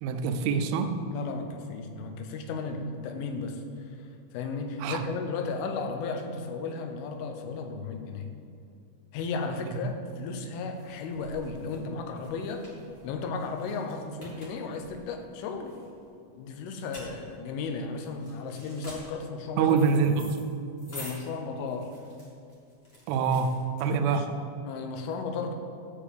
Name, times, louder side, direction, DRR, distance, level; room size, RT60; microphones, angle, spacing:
voice 1, 0.0-1.0 4.8-5.0 9.7-9.8 19.6-20.4 23.1-24.3, right 5 dB, 85° right, 7 dB, 3.3 m, -25 dB
voice 2, 1.1-8.4 9.1-12.7 13.0-15.7 16.4-19.8 20.9-22.0 24.0-24.3 24.6-25.5, left 4 dB, 85° left, 6 dB, 3.4 m, -35 dB
sound 1, 9.9-24.3, equal, 20° left, 1.7 m, -49 dB
13.5 x 5.1 x 7.5 m, 2.5 s
omnidirectional pair, 5.6 m